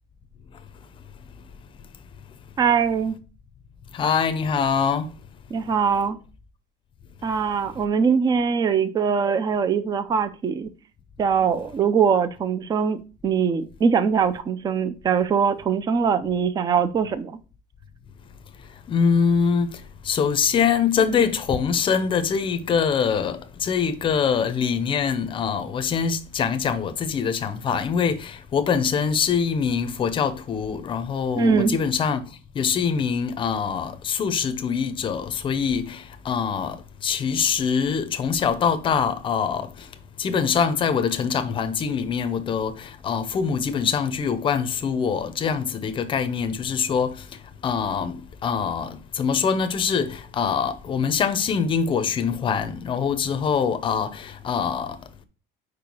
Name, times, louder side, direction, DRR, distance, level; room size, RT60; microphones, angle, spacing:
voice 1, 2.6-3.2 5.5-6.2 7.2-10.7 11.2-17.4 31.4-31.8, right 6 dB, 20° right, 0.4 m, -22 dB
voice 2, 3.9-5.1 18.9-39.9 40.2-55.0, left 6 dB, 25° left, 0.6 m, -24 dB
4.8 x 4.7 x 5.2 m
cardioid pair, 175°, 20 cm